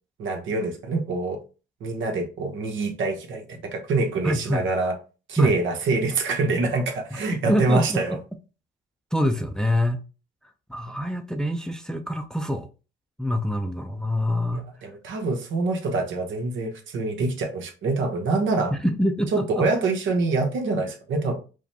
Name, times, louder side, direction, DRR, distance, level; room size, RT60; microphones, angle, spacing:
voice 1, 0.2-1.4 1.8-5.0 5.3-8.2 14.8-18.7 19.3-21.4, right 3 dB, 75° right, 1.0 m, -25 dB
voice 2, 4.2-4.7 5.4-5.5 7.1-7.2 7.5-8.2 9.1-10.0 10.7-12.7 13.2-14.6 18.7-19.6, left 1 dB, 5° left, 0.4 m, -25 dB
4.8 x 2.2 x 2.8 m
cardioid pair, 90°, 20 cm